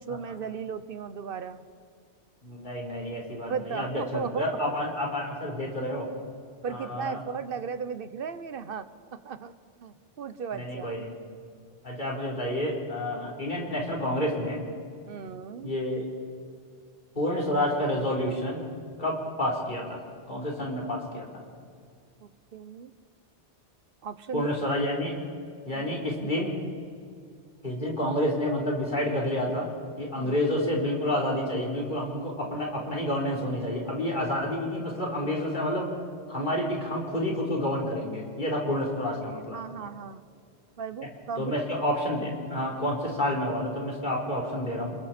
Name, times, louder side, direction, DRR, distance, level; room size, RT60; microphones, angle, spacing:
voice 1, 0.0-1.6 3.5-4.6 6.6-9.5 9.8-10.9 15.1-15.7 22.2-22.9 24.0-24.5 25.7-26.0 30.1-30.4 39.2-40.2 40.8-41.9, right 6 dB, 55° right, 12 dB, 1.0 m, -36 dB
voice 2, 2.4-6.1 6.7-7.2 10.5-11.1 11.8-14.6 15.6-16.1 17.2-18.6 19.0-21.3 24.3-25.2 25.6-26.5 27.6-29.7 30.0-35.9 36.3-39.6 41.4-45.0, left 1 dB, 45° left, -2 dB, 4.0 m, -29 dB
28.5 x 21.5 x 4.4 m, 2.3 s
omnidirectional pair, 1.2 m